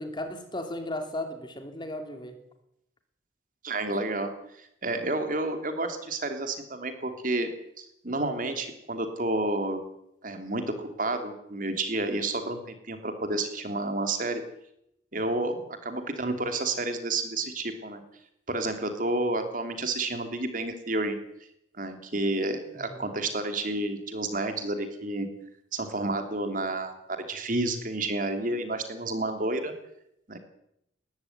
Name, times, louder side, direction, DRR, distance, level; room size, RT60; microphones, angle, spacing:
voice 1, 0.0-2.4 22.7-23.2, left 1 dB, 25° left, 6 dB, 2.9 m, -36 dB
voice 2, 3.6-4.3 4.6-7.5 7.8-9.8 10.2-14.4 15.1-18.0 18.5-21.1 21.8-25.3 25.7-29.7 30.3-30.4, right 2 dB, 45° right, 7 dB, 3.2 m, -30 dB
20.5 x 14.5 x 9.5 m, 0.78 s
head